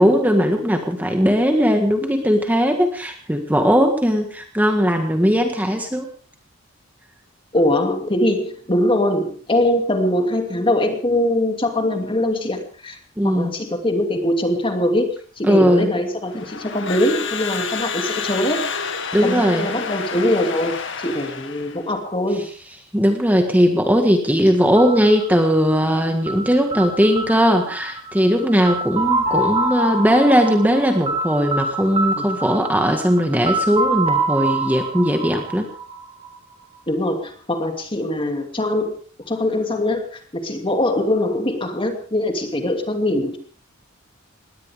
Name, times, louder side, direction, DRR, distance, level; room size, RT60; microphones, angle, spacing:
voice 1, 0.0-6.1 13.2-13.5 15.5-15.9 19.1-19.7 22.9-35.7, equal, 10° right, 4 dB, 1.7 m, -18 dB
voice 2, 7.5-13.0 13.2-18.6 19.2-22.5 32.2-32.3 36.9-38.9 39.3-43.4, left 1 dB, 25° left, 5 dB, 2.7 m, -22 dB
Crowd / Alarm, 16.3-21.8, left 6 dB, 65° left, 2.1 m, -29 dB
sound 1, 24.8-36.5, right 2 dB, 25° right, 7.2 m, -26 dB
21.0 x 17.5 x 3.7 m, 0.41 s
head